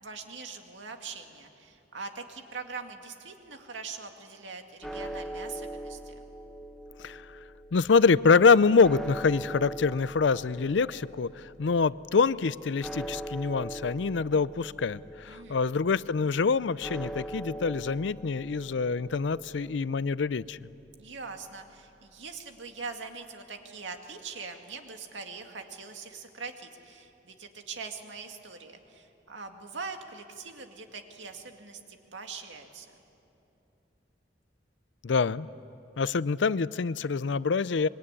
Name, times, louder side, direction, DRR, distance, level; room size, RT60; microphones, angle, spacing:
voice 1, 0.0-6.1 15.3-15.7 21.0-32.9, right 4 dB, 85° right, 4 dB, 2.2 m, -42 dB
sound 1, 4.8-23.1, right 1 dB, ahead, 0.9 m, -43 dB
voice 2, 7.7-20.6 35.0-35.5 36.0-37.9, left 4 dB, 80° left, 18 dB, 0.5 m, -25 dB
25.0 x 22.0 x 9.8 m, 2.8 s
head